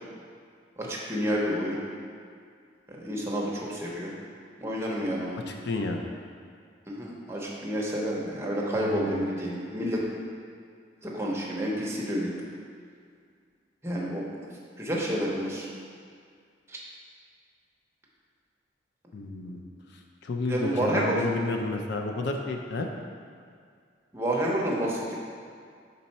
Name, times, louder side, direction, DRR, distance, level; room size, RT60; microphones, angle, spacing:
voice 1, 0.8-1.8 2.9-4.1 4.6-5.4 6.9-10.0 11.0-12.3 13.8-14.4 14.8-15.7 16.7-16.8 19.4-19.6 20.4-21.2 24.1-25.2, equal, 15° right, -4 dB, 0.9 m, -29 dB
voice 2, 5.3-6.0 8.7-9.3 19.1-19.6 20.2-22.9, left 2 dB, 65° left, 3 dB, 0.5 m, -31 dB
5.6 x 4.1 x 4.2 m, 2.2 s
head